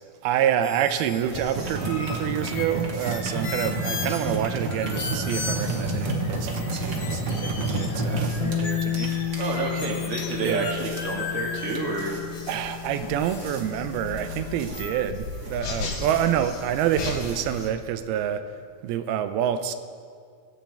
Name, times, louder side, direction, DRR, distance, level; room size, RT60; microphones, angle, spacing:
voice 1, 0.2-9.2 10.4-10.7 12.5-18.5 18.8-19.7, right 10 dB, 85° right, 2.5 m, -27 dB
sound 1, 0.6-17.7, left 4 dB, 60° left, 2.0 m, -36 dB
sound 2, 1.5-17.8, right 2 dB, 70° right, 1.0 m, -31 dB
Bass guitar, 8.4-14.7, left 10 dB, 80° left, 3.0 m, -32 dB
voice 2, 9.4-12.2, right 3 dB, 35° right, 1.2 m, -29 dB
24.5 x 8.7 x 3.4 m
omnidirectional pair, 4.4 m